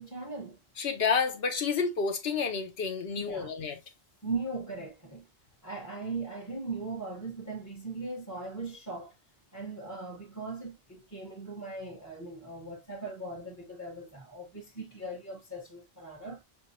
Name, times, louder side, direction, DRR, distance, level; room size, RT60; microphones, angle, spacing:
voice 1, 0.0-0.6 3.2-3.5 4.2-5.3 5.6-9.1 9.5-16.4, right 3 dB, 20° left, 0.8 m, -39 dB
voice 2, 0.8-3.8, left 5 dB, 75° left, 1.1 m, -30 dB
5.4 x 2.7 x 2.7 m
omnidirectional pair, 1.1 m